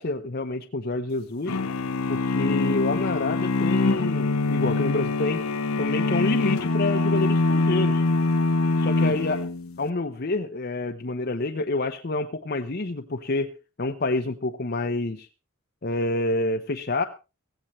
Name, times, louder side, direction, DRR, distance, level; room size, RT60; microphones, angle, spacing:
voice 1, 0.0-1.6 2.1-5.4 5.8-8.0 8.8-9.4 9.8-15.3 15.8-17.0, left 2 dB, 45° left, 6 dB, 0.8 m, -28 dB
sound 1, 1.5-9.8, left 3 dB, 85° left, 0.8 m, -24 dB
16.5 x 16.0 x 3.2 m, 0.30 s
head